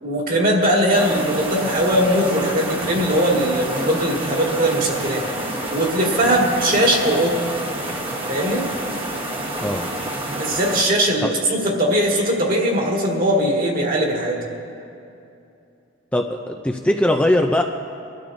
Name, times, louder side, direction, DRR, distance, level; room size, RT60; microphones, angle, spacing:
voice 1, 0.0-5.3 5.7-7.4 8.3-8.7 10.4-14.5, equal, 45° right, -1 dB, 2.0 m, -20 dB
sound 1, 0.9-10.8, right 1 dB, 30° right, 1.2 m, -28 dB
voice 2, 16.1-17.6, left 1 dB, 5° left, 2 dB, 0.4 m, -20 dB
24.0 x 12.0 x 2.6 m, 2.6 s
head